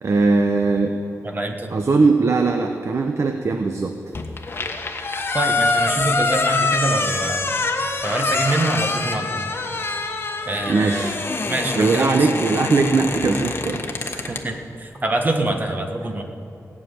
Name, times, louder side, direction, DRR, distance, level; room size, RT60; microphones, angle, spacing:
voice 1, 0.0-1.0 1.7-4.0 10.7-11.1 11.8-14.1, right 3 dB, 55° right, 5 dB, 0.8 m, -20 dB
voice 2, 1.2-1.7 5.3-7.5 8.0-9.5 10.4-11.2 11.5-12.3 14.1-16.2, right 2 dB, 30° right, 4 dB, 1.4 m, -25 dB
sound 1, 4.1-14.4, left 3 dB, 40° left, 1.2 m, -24 dB
17.5 x 6.6 x 9.3 m, 2.7 s
wide cardioid pair, 115°, 6 cm